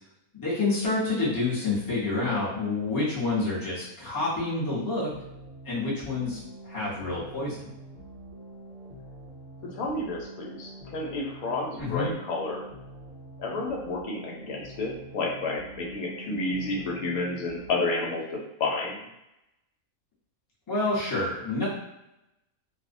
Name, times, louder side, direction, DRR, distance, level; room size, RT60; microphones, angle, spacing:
voice 1, 0.3-5.1 5.6-6.4 6.6-7.6 11.8-12.1 20.7-21.7, left 3 dB, 20° left, -8 dB, 0.6 m, -28 dB
sound 1, 4.1-17.7, right 1 dB, 60° right, 0.7 m, -46 dB
voice 2, 9.6-12.6 13.4-18.2 18.6-19.1, left 2 dB, 80° left, -2 dB, 1.1 m, -30 dB
2.5 x 2.0 x 2.5 m, 0.88 s
omnidirectional pair, 1.5 m